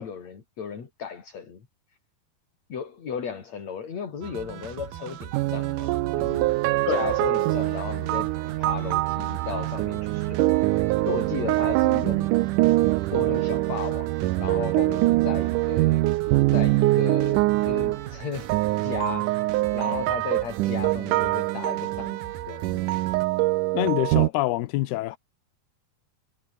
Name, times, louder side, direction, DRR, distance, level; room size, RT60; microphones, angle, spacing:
voice 1, 0.0-1.7 2.7-6.6 6.9-10.7 11.0-12.3 13.1-16.0 16.5-18.5 18.8-19.3 19.7-22.9, left 7 dB, 45° left, 4.4 m, -35 dB
sound 1, 4.2-23.3, right 11 dB, 65° right, 3.3 m, -41 dB
sound 2, 5.3-24.3, right 19 dB, 90° right, 1.8 m, -24 dB
voice 2, 23.7-25.2, left 17 dB, 85° left, 2.9 m, -26 dB
omnidirectional pair, 4.4 m